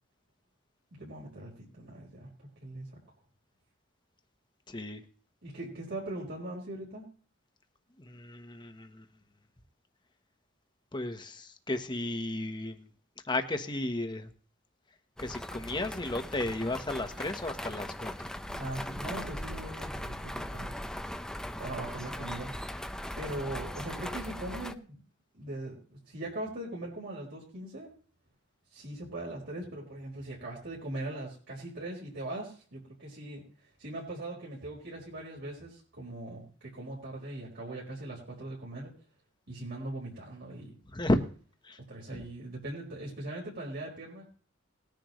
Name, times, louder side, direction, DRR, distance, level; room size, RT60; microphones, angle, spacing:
voice 1, 0.9-2.9 5.4-7.1 18.5-20.7 21.6-22.5 23.2-25.0 25.3-27.9 28.7-38.9 39.5-40.7 41.9-44.3, right 1 dB, 55° right, -4 dB, 4.9 m, -40 dB
voice 2, 4.7-5.0 8.0-9.0 10.9-12.9 13.2-14.3 15.2-18.3 40.9-41.2 41.6-41.8 42.1-42.3, left 1 dB, 20° left, 7 dB, 1.2 m, -33 dB
sound 1, 15.2-24.7, left 1 dB, 5° left, 0.6 m, -39 dB
19.5 x 10.5 x 3.2 m, 0.43 s
head